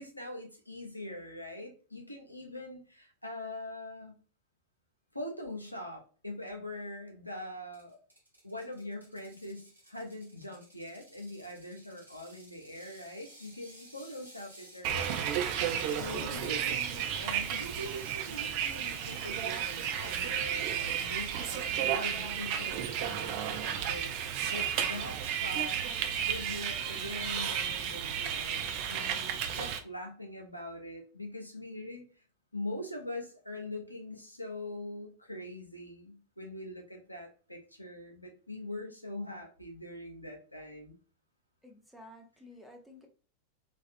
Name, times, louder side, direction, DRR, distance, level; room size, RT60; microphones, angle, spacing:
voice 1, 0.0-4.1 5.1-8.0 8.4-25.8 26.3-32.2 32.5-41.0, left 1 dB, 85° left, 3 dB, 0.7 m, -43 dB
Ratchet pawl, 7.7-20.9, right 1 dB, 85° right, 0.8 m, -55 dB
Bus, 14.8-29.8, right 9 dB, 45° right, 0.4 m, -33 dB
voice 2, 41.6-43.1, left 1 dB, 5° right, 3 dB, 0.7 m, -52 dB
3.3 x 2.3 x 2.6 m, 0.38 s
figure-of-eight pair, 90°, 0 cm